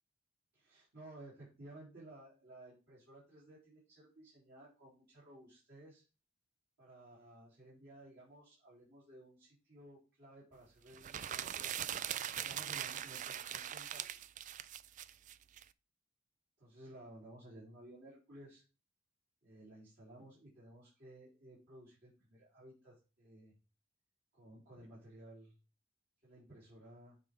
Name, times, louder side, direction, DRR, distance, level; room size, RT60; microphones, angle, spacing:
voice 1, 0.5-6.0 6.8-12.0 12.4-14.0 16.6-18.6 19.4-23.5 24.3-25.5 26.2-27.2, right 1 dB, 55° right, -9 dB, 3.8 m, -56 dB
sound 1, 10.9-15.6, right 10 dB, 40° right, 0.3 m, -41 dB
9.0 x 5.0 x 3.8 m, 0.33 s
head